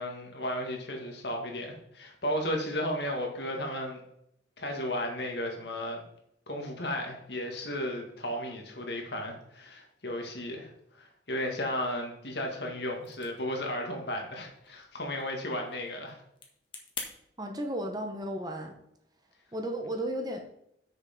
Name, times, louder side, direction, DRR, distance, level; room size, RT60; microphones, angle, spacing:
voice 1, 0.0-4.0 4.6-6.0 6.5-10.7 10.9-16.2, left 1 dB, 65° left, 1 dB, 2.0 m, -34 dB
sound 1, 12.9-17.1, left 5 dB, 30° left, 1.5 m, -47 dB
voice 2, 17.4-18.7 19.5-20.4, right 1 dB, 20° right, 4 dB, 1.0 m, -34 dB
7.3 x 6.6 x 5.4 m, 0.76 s
head